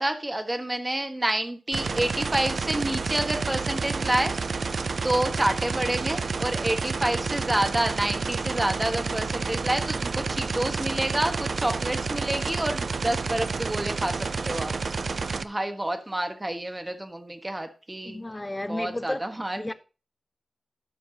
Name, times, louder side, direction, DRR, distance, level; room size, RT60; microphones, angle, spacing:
voice 1, 0.0-4.3 5.0-14.8 15.4-18.2 18.6-19.7, right 1 dB, 20° right, 1.4 m, -28 dB
sound 1, 1.7-15.4, right 4 dB, 60° right, 0.4 m, -29 dB
voice 2, 18.0-19.3 19.6-19.7, left 1 dB, 20° left, 0.6 m, -32 dB
16.5 x 5.9 x 2.8 m
wide cardioid pair, 90°, 0 cm